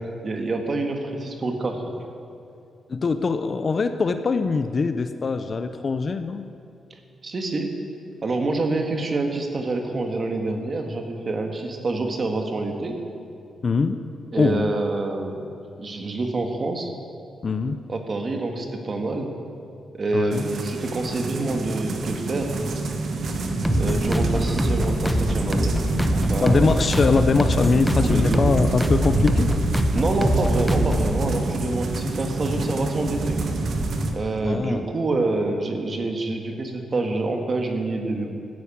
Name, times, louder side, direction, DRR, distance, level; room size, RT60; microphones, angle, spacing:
voice 1, 0.2-1.8 7.2-7.7 8.2-13.0 14.3-15.4 15.8-16.9 17.9-19.3 19.9-22.5 23.7-25.8 26.1-26.8 28.0-28.4 29.9-33.4 34.1-38.3, right 2 dB, 35° right, 4 dB, 1.7 m, -27 dB
voice 2, 2.9-6.4 13.6-14.0 14.4-14.7 17.4-17.8 20.1-20.4 26.4-29.5 34.4-34.9, left 4 dB, 35° left, 9 dB, 0.6 m, -22 dB
sound 1, 20.3-34.1, right 2 dB, 55° right, 1.3 m, -26 dB
sound 2, 23.6-31.2, equal, ahead, 0.8 m, -24 dB
14.0 x 10.5 x 8.6 m, 2.5 s
wide cardioid pair, 150°, 0 cm